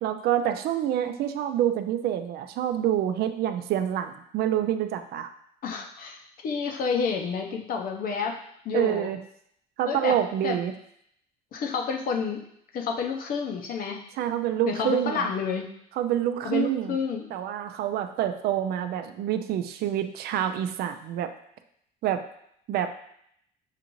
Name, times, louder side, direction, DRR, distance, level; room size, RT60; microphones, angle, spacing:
voice 1, 0.0-5.3 8.7-9.2 9.8-10.7 14.2-15.2 16.0-17.0 17.3-21.3 22.0-22.2 22.7-22.9, right 10 dB, 70° right, 8 dB, 0.4 m, -27 dB
voice 2, 5.6-8.4 8.6-9.1 9.9-10.2 10.4-10.6 11.5-12.4 12.7-14.0 14.7-15.7 16.4-17.3, left 5 dB, 60° left, 2 dB, 0.7 m, -29 dB
6.5 x 2.5 x 3.0 m, 0.71 s
cardioid pair, 110°, 17 cm